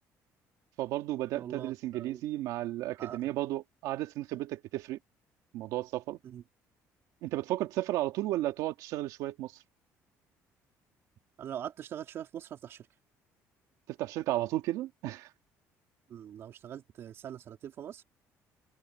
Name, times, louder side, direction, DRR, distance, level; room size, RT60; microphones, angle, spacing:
voice 1, 0.8-5.0 5.5-6.2 7.2-9.5 13.9-15.3, right 15 dB, 80° right, 2.4 m, -33 dB
voice 2, 1.3-2.2 3.0-3.3 6.2-6.4 11.4-12.9 16.1-18.0, right 10 dB, 45° right, 3.9 m, -43 dB
cardioid pair, 175°, 6 cm